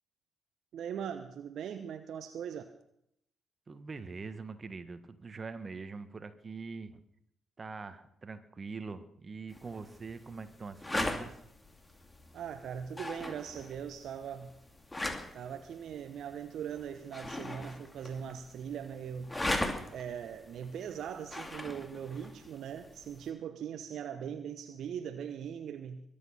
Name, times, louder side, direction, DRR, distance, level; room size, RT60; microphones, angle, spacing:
voice 1, 0.7-2.7 12.3-14.5 15.3-19.4 19.9-26.0, right 8 dB, 60° right, 9 dB, 1.0 m, -40 dB
voice 2, 3.7-7.0 7.6-11.4, right 4 dB, 35° right, 11 dB, 1.5 m, -43 dB
sound 1, 9.5-23.3, left 1 dB, 20° left, 2.8 m, -40 dB
22.5 x 8.7 x 5.7 m, 0.73 s
hypercardioid pair, 45°, 0 cm